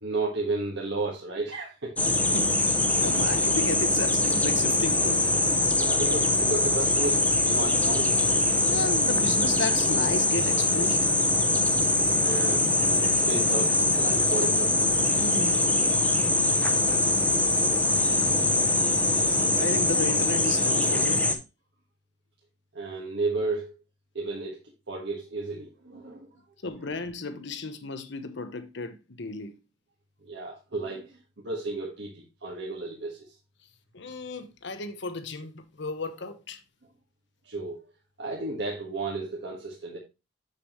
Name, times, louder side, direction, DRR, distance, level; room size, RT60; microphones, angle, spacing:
voice 1, 0.0-1.9 5.8-8.3 12.2-12.7 13.1-14.8 22.7-23.7 24.2-24.6 24.9-26.3 30.2-31.2 31.4-33.2 37.4-37.8 38.2-40.0, right 3 dB, 65° right, 1.6 m, -33 dB
sound 1, 2.0-21.4, left 2 dB, 10° left, 0.8 m, -23 dB
voice 2, 2.3-5.2 8.6-11.1 15.1-15.7 19.3-21.2 26.6-29.6 33.9-36.6, left 3 dB, 65° left, 1.0 m, -34 dB
7.0 x 6.7 x 3.1 m
head